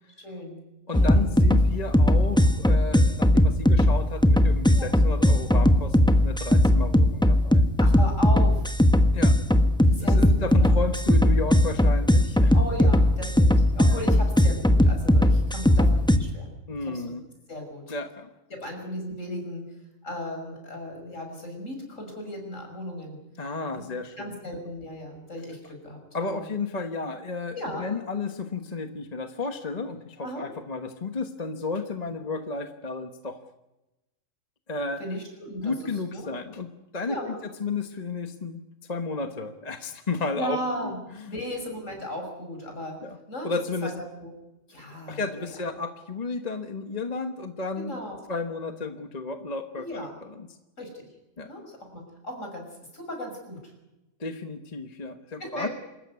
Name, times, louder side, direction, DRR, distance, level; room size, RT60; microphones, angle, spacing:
voice 1, 0.2-0.6 0.9-1.2 4.7-4.9 7.8-8.7 9.8-10.7 12.5-16.5 16.9-17.0 17.5-17.8 18.5-19.7 20.0-23.2 23.7-26.5 27.5-27.9 30.2-30.5 35.0-35.7 36.1-36.3 37.1-37.4 40.4-41.0 41.3-43.0 43.3-43.5 43.8-44.3 44.7-45.5 47.7-48.2 49.7-50.2 50.8-51.0 51.4-51.6 51.9-52.6 52.9-53.7 55.4-55.7, left 1 dB, 65° left, 3 dB, 6.4 m, -36 dB
voice 2, 0.9-7.6 9.1-9.4 10.0-12.5 13.9-14.0 16.7-17.2 17.9-18.3 23.4-24.6 26.1-33.4 34.7-35.0 35.6-38.6 38.9-41.3 43.0-43.2 43.4-43.9 44.8-48.0 48.3-50.5 51.4-51.6 54.2-55.7, left 3 dB, 30° left, 6 dB, 1.3 m, -33 dB
sound 1, 0.9-16.2, left 1 dB, 5° left, 1.0 m, -19 dB
26.5 x 14.5 x 9.6 m, 1.0 s
omnidirectional pair, 1.4 m